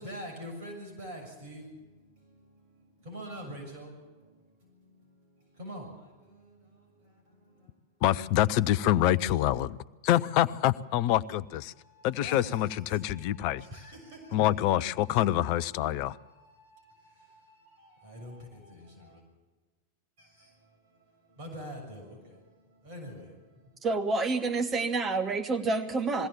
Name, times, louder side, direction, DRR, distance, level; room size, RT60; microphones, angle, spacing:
voice 1, 0.0-8.0 10.4-10.5 11.7-19.2 20.2-23.8, equal, 50° right, 7.0 m, -47 dB
voice 2, 8.0-9.8 10.0-11.7 12.0-13.6 14.3-16.2, left 13 dB, 45° left, 0.6 m, -26 dB
voice 3, 23.8-26.3, right 3 dB, 25° right, 1.7 m, -28 dB
22.0 x 16.5 x 7.3 m
figure-of-eight pair, 90°, 0 cm